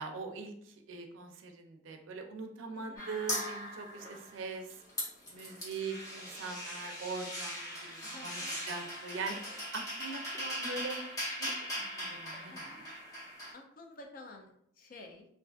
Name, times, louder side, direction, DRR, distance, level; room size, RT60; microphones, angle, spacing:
voice 1, 0.0-4.7 5.3-9.4 9.7-11.0 11.4-11.5 11.9-13.0, right 4 dB, 85° right, 5 dB, 0.4 m, -42 dB
sound 1, 3.0-4.4 4.7-13.5, equal, 20° left, 0.7 m, -40 dB
voice 2, 8.0-8.6 12.3-12.9 13.5-15.3, left 2 dB, 45° left, 3 dB, 0.4 m, -52 dB
2.5 x 2.4 x 2.3 m, 0.69 s
head